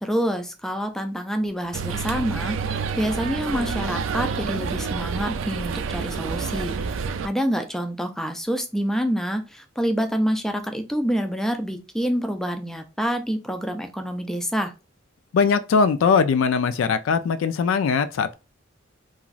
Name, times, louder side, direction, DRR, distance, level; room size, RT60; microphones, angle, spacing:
voice 1, 0.0-14.7, equal, ahead, 0.3 m, -27 dB
sound 1, 1.7-7.3, right 5 dB, 80° right, 0.3 m, -28 dB
voice 2, 15.3-18.3, left 5 dB, 85° left, 0.3 m, -20 dB
2.9 x 2.4 x 2.4 m
head